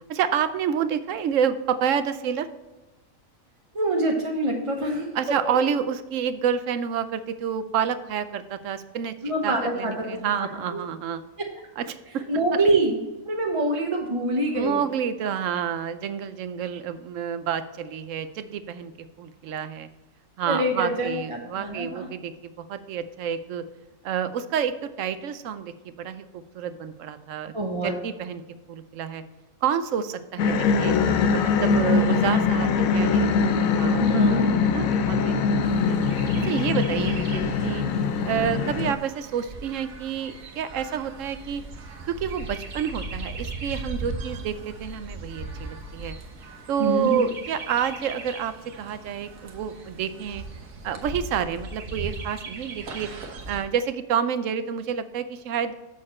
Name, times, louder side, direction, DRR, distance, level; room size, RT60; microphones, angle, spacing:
voice 1, 0.1-2.5 5.1-9.1 9.4-11.2 11.8-12.6 14.5-18.9 19.2-19.9 20.4-23.6 24.0-27.5 27.8-28.4 28.7-29.2 29.6-30.9 31.3-34.0 34.3-35.3 35.6-36.0 36.4-37.8 38.2-41.6 42.1-46.2 46.7-50.4 50.8-53.1 53.5-55.7, right 8 dB, 70° right, 12 dB, 1.0 m, -29 dB
voice 2, 3.7-5.6 9.2-9.9 10.4-10.8 12.3-13.0 13.3-14.8 20.4-22.1 27.5-27.9 34.0-34.6 46.8-47.3, right 1 dB, 25° right, 0 dB, 0.9 m, -25 dB
sound 1, 30.4-38.9, left 5 dB, 90° left, 1.1 m, -22 dB
Chirp tweet, 35.6-53.6, right 3 dB, 90° right, 1.5 m, -38 dB
7.3 x 6.5 x 4.3 m, 1.1 s
omnidirectional pair, 1.4 m